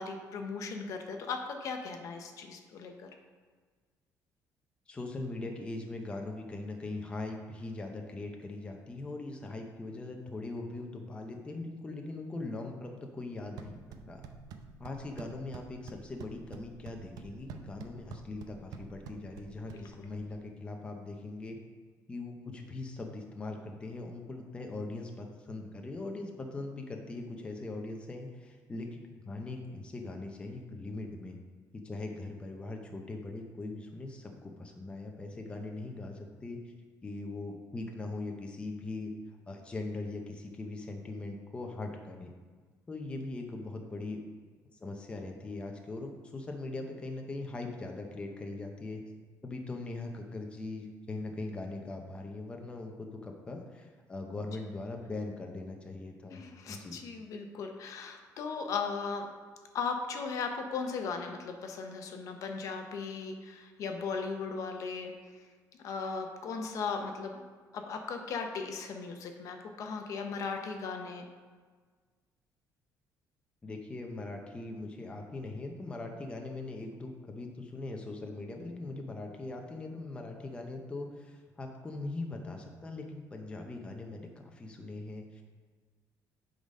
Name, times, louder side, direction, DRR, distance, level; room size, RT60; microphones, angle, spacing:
voice 1, 0.0-3.1 19.7-19.9 56.3-59.3 59.7-65.4 65.8-67.4 67.7-71.2, left 5 dB, 55° left, 5 dB, 0.8 m, -37 dB
voice 2, 4.9-14.2 14.8-21.6 22.1-31.4 31.7-36.7 37.0-39.1 39.5-42.3 42.9-44.2 44.7-49.0 49.4-56.4 56.7-57.0 73.6-85.4, left 2 dB, 15° left, 2 dB, 0.7 m, -41 dB
sound 1, 13.4-20.3, right 5 dB, 75° right, 0.6 m, -49 dB
8.3 x 3.9 x 5.3 m, 1.5 s
cardioid pair, 160°, 7 cm